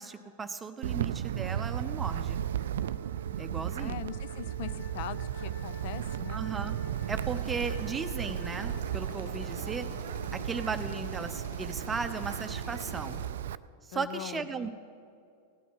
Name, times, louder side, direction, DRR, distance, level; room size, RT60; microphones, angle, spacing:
voice 1, 0.0-2.4 3.4-4.0 6.3-6.8 7.1-9.9 10.3-13.2 13.9-14.7, right 5 dB, 15° right, 8 dB, 0.7 m, -36 dB
Wind, 0.8-13.6, right 10 dB, 65° right, 0.3 m, -35 dB
Wind instrument woodwind instrument, 1.3-11.7, right 1 dB, 85° left, 3.4 m, -49 dB
voice 2, 3.8-6.5 13.9-14.7, left 11 dB, 55° left, 16 dB, 0.5 m, -41 dB
Drill, 7.2-13.2, left 1 dB, 70° left, 3.1 m, -46 dB
16.5 x 9.3 x 5.6 m, 2.4 s
figure-of-eight pair, 95°, 0 cm